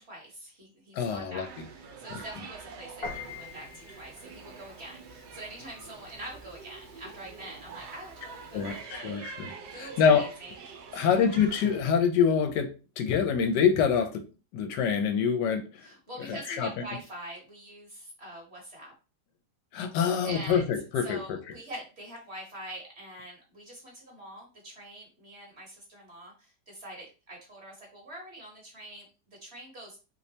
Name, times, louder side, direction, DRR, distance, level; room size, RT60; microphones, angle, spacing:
voice 1, 0.0-1.5 2.0-9.2 9.7-10.6 10.9-11.4 15.8-18.9 20.2-20.7 21.0-30.0, right 1 dB, 45° right, -1 dB, 1.2 m, -45 dB
voice 2, 0.9-1.5 2.1-2.2 8.5-10.3 10.9-14.2 14.5-15.9 16.2-16.8 19.7-21.4, left 7 dB, 80° left, 7 dB, 1.2 m, -26 dB
sound 1, 1.4-11.8, right 5 dB, 75° right, 1.2 m, -46 dB
Piano, 3.0-8.9, left 4 dB, 40° left, 1.0 m, -46 dB
3.1 x 3.1 x 2.7 m, 0.32 s
omnidirectional pair, 1.9 m